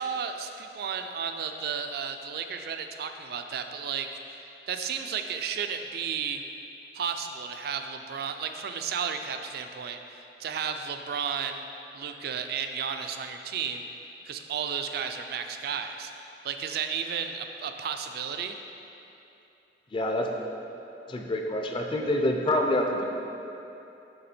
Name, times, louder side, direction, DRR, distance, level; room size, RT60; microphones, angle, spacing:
voice 1, 0.0-4.4 4.7-6.4 6.9-11.6 11.9-13.9 14.3-16.1 16.4-18.6, right 7 dB, 60° right, 6 dB, 0.3 m, -33 dB
voice 2, 19.9-20.3 21.1-23.1, left 1 dB, 30° left, 2 dB, 0.4 m, -26 dB
6.7 x 3.4 x 4.3 m, 2.9 s
head